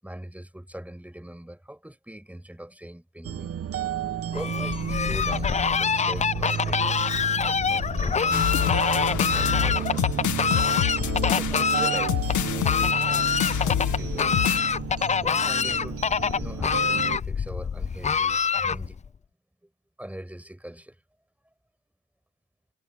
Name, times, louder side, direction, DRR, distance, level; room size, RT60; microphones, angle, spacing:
voice 1, 0.0-3.5 4.3-5.5 5.8-10.3 11.2-14.5 15.2-16.0 16.4-19.0 20.0-21.0, right 1 dB, 5° right, 7.6 m, -41 dB
sound 1, 3.2-17.2, right 9 dB, 50° right, 1.4 m, -32 dB
Fowl, 4.3-19.1, left 6 dB, 25° left, 0.4 m, -26 dB
sound 2, 8.3-14.6, left 12 dB, 75° left, 1.7 m, -28 dB
cardioid pair, 90°, 30 cm